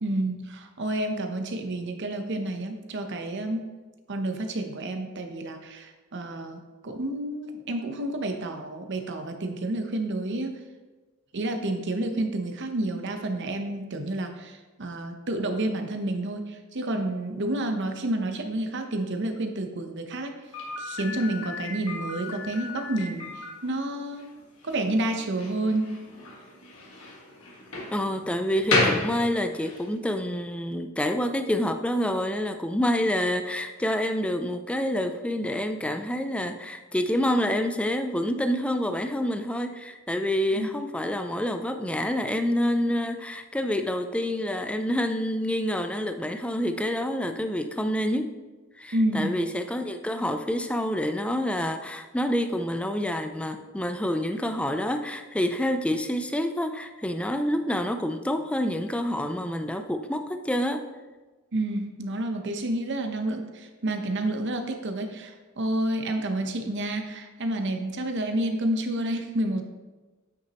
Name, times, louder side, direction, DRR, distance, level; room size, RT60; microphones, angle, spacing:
voice 1, 0.0-3.6 4.1-10.5 11.3-20.3 20.8-23.3 23.6-24.3 24.6-25.9 40.5-40.7 48.9-49.4 61.5-69.6, right 1 dB, 60° right, 5 dB, 0.8 m, -29 dB
Slam, 20.5-29.9, left 2 dB, 70° left, 1.7 m, -32 dB
voice 2, 27.9-48.3 48.8-60.8, left 1 dB, 5° left, 7 dB, 0.3 m, -27 dB
8.8 x 5.8 x 3.0 m, 1.2 s
head